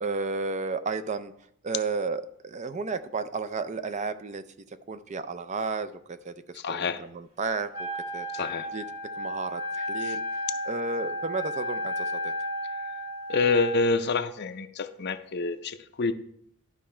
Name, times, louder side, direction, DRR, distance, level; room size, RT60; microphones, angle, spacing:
voice 1, 0.0-1.3 1.6-4.4 4.9-6.3 6.7-8.4 8.7-8.8 9.2-12.3, right 4 dB, 35° right, 11 dB, 0.4 m, -32 dB
voice 2, 6.5-7.0 8.3-8.7 10.0-10.2 13.3-16.1, left 4 dB, 50° left, 11 dB, 0.5 m, -27 dB
Wind instrument woodwind instrument, 7.7-13.9, left 1 dB, 90° right, 2.3 m, -33 dB
11.5 x 5.5 x 4.3 m, 0.70 s
head